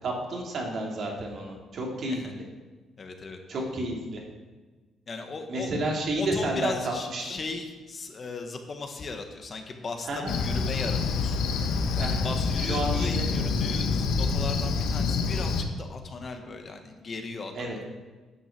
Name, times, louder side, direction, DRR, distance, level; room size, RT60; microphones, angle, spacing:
voice 1, 0.0-2.4 3.5-4.2 5.5-7.4 10.1-10.3 12.0-12.2 12.6-13.3 17.5-17.8, right 1 dB, 60° right, -1 dB, 2.7 m, -31 dB
voice 2, 3.0-3.4 5.1-5.7 6.2-11.4 11.9-17.7, left 3 dB, 40° left, 5 dB, 1.3 m, -37 dB
Cricket, 10.3-15.6, left 4 dB, 90° left, 1.0 m, -27 dB
9.8 x 6.5 x 6.0 m, 1.3 s
cardioid pair, 90°, 0 cm